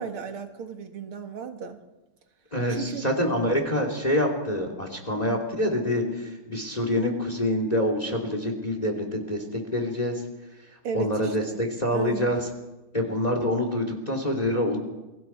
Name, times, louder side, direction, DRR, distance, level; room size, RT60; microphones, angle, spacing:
voice 1, 0.0-1.8 2.7-3.1 10.8-11.6 11.9-12.3, right 6 dB, 80° right, 5 dB, 2.6 m, -35 dB
voice 2, 2.5-10.2 10.9-12.5 12.9-14.8, left 1 dB, 20° left, 4 dB, 2.9 m, -26 dB
28.5 x 23.0 x 4.6 m, 1.1 s
omnidirectional pair, 2.4 m